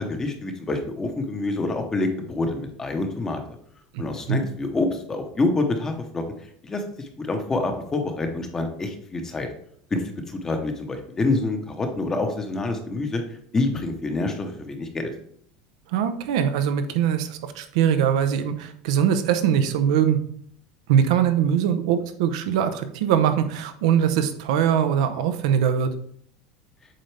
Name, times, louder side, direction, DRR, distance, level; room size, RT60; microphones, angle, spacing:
voice 1, 0.0-3.4 4.0-6.2 6.6-6.8 7.3-9.5 9.9-13.2 13.5-15.1, left 2 dB, 15° left, 5 dB, 0.9 m, -26 dB
voice 2, 3.9-4.4 15.9-20.2 20.9-25.9, right 8 dB, 80° right, 9 dB, 0.7 m, -22 dB
7.7 x 4.0 x 3.3 m, 0.63 s
cardioid pair, 155°, 3 cm